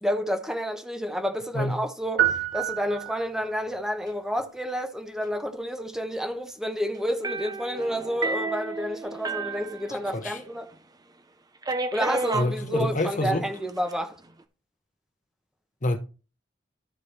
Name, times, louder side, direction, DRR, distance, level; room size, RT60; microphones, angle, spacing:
voice 1, 0.0-10.7 11.9-14.2, equal, 5° right, 1.0 m, -30 dB
sound 1, 2.2-3.6, right 11 dB, 65° right, 1.9 m, -27 dB
sound 2, 7.2-10.5 10.7-10.8 11.6-12.5 13.5-13.9, right 3 dB, 20° right, 0.7 m, -31 dB
voice 2, 12.3-13.4 15.8-16.0, left 1 dB, 45° left, 0.9 m, -27 dB
12.5 x 4.7 x 3.3 m
head